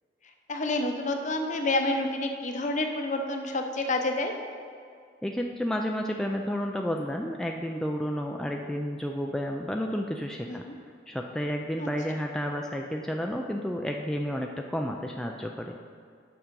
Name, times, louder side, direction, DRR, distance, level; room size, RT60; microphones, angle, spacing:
voice 1, 0.5-4.3 10.5-10.8 11.8-11.9, left 2 dB, 40° left, 4 dB, 0.7 m, -29 dB
voice 2, 5.2-10.6 11.1-15.8, equal, 5° left, 1 dB, 0.3 m, -31 dB
7.1 x 6.2 x 5.2 m, 2.1 s
head